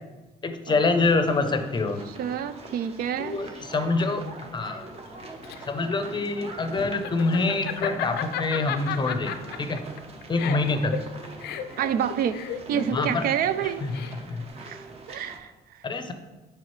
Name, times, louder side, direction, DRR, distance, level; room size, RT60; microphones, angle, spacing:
voice 1, 0.4-2.0 3.2-4.2 4.5-4.9 5.7-9.8 10.3-10.9 12.9-13.2 14.3-14.4 15.8-16.1, left 3 dB, 25° left, 8 dB, 0.6 m, -25 dB
sound 1, 0.9-15.4, right 2 dB, 35° right, 0.9 m, -43 dB
voice 2, 2.1-3.4 11.8-13.8 14.6-15.9, right 9 dB, 60° right, 12 dB, 0.4 m, -28 dB
Laughter, 5.1-14.5, left 10 dB, 75° left, 0.5 m, -34 dB
7.4 x 4.8 x 3.1 m, 1.2 s
cardioid pair, 110°, 17 cm